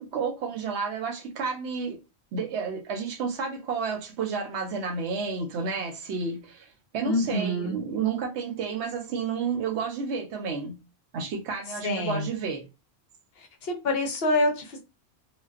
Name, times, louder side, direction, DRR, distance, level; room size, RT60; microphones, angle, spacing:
voice 1, 0.0-2.0 2.3-6.4 6.9-10.8 11.1-12.6, right 5 dB, 80° right, 0.9 m, -31 dB
voice 2, 7.0-7.8 11.8-12.3 13.4-14.8, left 1 dB, 65° left, 0.8 m, -26 dB
2.5 x 2.2 x 2.3 m
omnidirectional pair, 1.1 m